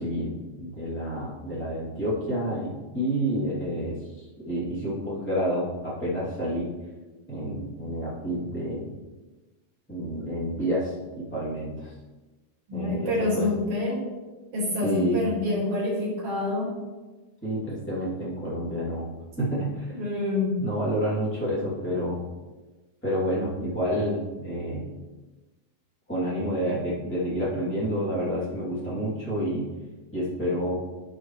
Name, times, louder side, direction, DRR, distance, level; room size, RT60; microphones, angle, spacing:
voice 1, 0.0-3.9 4.4-6.7 7.3-8.9 9.9-11.9 12.7-13.5 14.8-15.2 17.4-19.1 19.4-20.0 20.6-22.2 23.0-24.9 26.1-29.7 30.1-30.7, equal, 5° left, -9 dB, 0.9 m, -29 dB
voice 2, 12.7-14.0 14.5-16.7 19.9-20.6, left 2 dB, 45° right, -4 dB, 2.2 m, -27 dB
10.5 x 6.7 x 3.2 m, 1.2 s
omnidirectional pair, 5.4 m